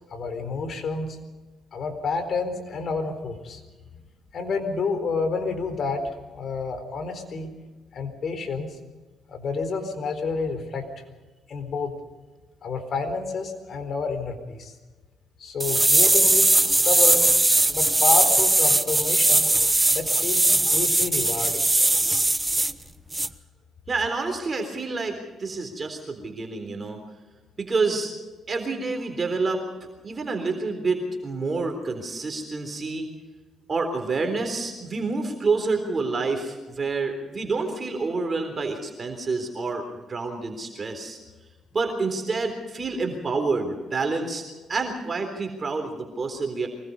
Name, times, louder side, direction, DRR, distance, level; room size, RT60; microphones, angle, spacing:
voice 1, 0.1-1.2 1.7-3.6 4.3-7.5 7.9-8.8 9.3-10.9 11.5-12.0 12.6-14.7 15.4-17.2 17.7-19.5 19.9-21.7, left 4 dB, 55° left, 8 dB, 4.1 m, -29 dB
sound 1, 15.6-22.7 23.1-23.3, right 2 dB, 15° right, 1.0 m, -20 dB
voice 2, 23.9-27.0 27.6-28.1 28.5-33.1 33.7-41.2 41.7-44.4 44.7-46.7, right 3 dB, 35° right, 4 dB, 3.7 m, -28 dB
24.0 x 21.0 x 5.5 m, 1.3 s
cardioid pair, 90°, 0 cm